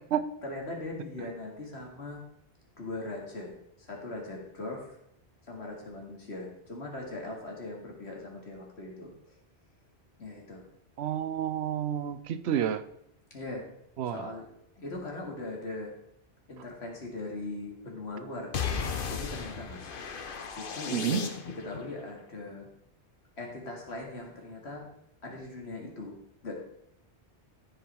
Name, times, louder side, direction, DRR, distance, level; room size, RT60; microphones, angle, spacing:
voice 1, 0.4-2.2 2.8-3.5 3.8-5.0 5.5-9.1 10.2-10.6 13.3-13.7 14.1-14.5 14.8-15.9 16.5-18.6 19.1-19.9 20.6-21.2 21.6-22.7 23.4-24.9 25.2-26.1 26.4-26.5, left 2 dB, 70° left, 0 dB, 2.4 m, -40 dB
voice 2, 11.0-12.8 14.0-14.3 20.9-21.3, right 9 dB, 75° right, 13 dB, 0.9 m, -30 dB
sound 1, 18.5-21.8, left 6 dB, 55° left, 1.0 m, -35 dB
13.5 x 5.1 x 4.5 m, 0.74 s
omnidirectional pair, 1.1 m